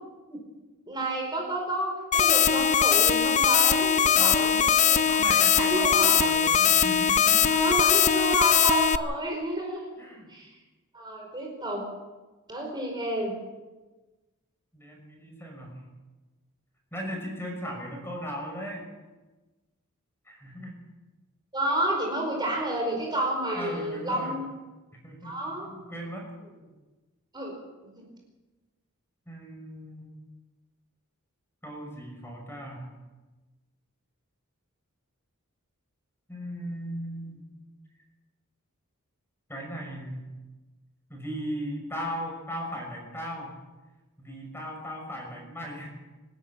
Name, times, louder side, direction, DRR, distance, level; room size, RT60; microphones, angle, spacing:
voice 1, 0.9-5.1 5.6-6.3 7.5-9.9 10.3-10.5 10.9-11.9 12.5-13.4 21.5-24.5 25.2-25.7 27.3-27.5 28.0-28.1, right 1 dB, 20° right, 0 dB, 4.9 m, -30 dB
sound 1, 2.1-9.0, left 8 dB, 35° left, 0.7 m, -21 dB
voice 2, 4.1-4.6 5.1-7.4 10.0-10.3 14.7-15.7 16.9-18.9 20.3-20.7 23.6-24.3 25.0-26.2 29.3-30.1 31.6-32.9 36.3-37.4 39.5-40.2 41.1-43.5 44.2-45.9, equal, 10° left, 1 dB, 6.2 m, -37 dB
25.0 x 13.0 x 8.9 m, 1.2 s
head